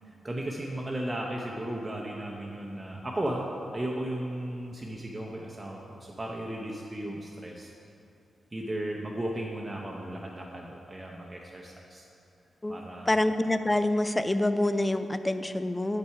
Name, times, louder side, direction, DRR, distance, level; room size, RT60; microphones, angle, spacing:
voice 1, 0.0-3.5 3.7-7.7 8.5-12.1 12.7-13.1, right 1 dB, 25° right, -1 dB, 0.7 m, -35 dB
voice 2, 13.1-16.0, left 1 dB, 20° left, 11 dB, 0.4 m, -26 dB
6.8 x 5.6 x 4.5 m, 2.6 s
cardioid pair, 60°, 0 cm